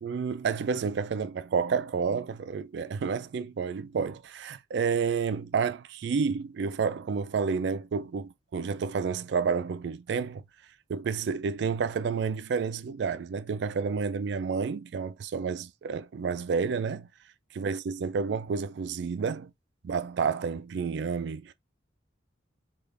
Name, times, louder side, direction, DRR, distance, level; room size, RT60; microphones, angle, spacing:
voice 1, 0.0-10.4 10.9-17.1 17.6-19.5 19.8-21.5, right 5 dB, 65° right, 0.3 m, -30 dB
3.5 x 2.4 x 3.2 m
head